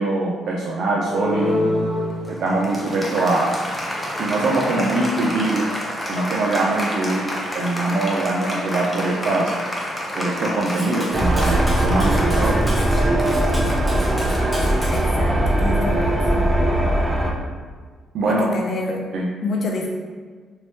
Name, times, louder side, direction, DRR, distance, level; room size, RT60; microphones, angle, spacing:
voice 1, 0.0-1.6 2.3-3.6 4.2-5.8 6.1-7.3 7.5-9.5 10.1-12.6 18.1-18.5 19.1-19.3, right 2 dB, 70° right, -2 dB, 0.4 m, -22 dB
Applause, 1.0-15.1, left 1 dB, 15° left, 0.7 m, -28 dB
Cutlery silverware, 10.7-15.0, equal, ahead, 1.2 m, -35 dB
sound 1, 11.1-17.3, right 1 dB, 25° right, 0.7 m, -20 dB
voice 2, 14.9-16.5 18.3-19.1 19.4-19.9, left 2 dB, 55° left, 0 dB, 0.6 m, -27 dB
3.0 x 2.7 x 3.1 m, 1.5 s
cardioid pair, 90°, 0 cm